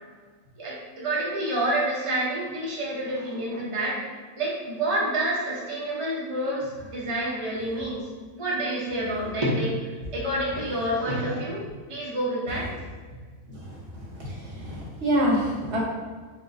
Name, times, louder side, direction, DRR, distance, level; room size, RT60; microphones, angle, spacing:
voice 1, 0.6-4.0 4.4-8.0 8.3-11.6 11.9-12.7, right 1 dB, 30° right, -5 dB, 0.6 m, -28 dB
voice 2, 14.2-15.8, equal, 50° right, -4 dB, 1.1 m, -26 dB
4.5 x 2.2 x 3.7 m, 1.5 s
omnidirectional pair, 1.6 m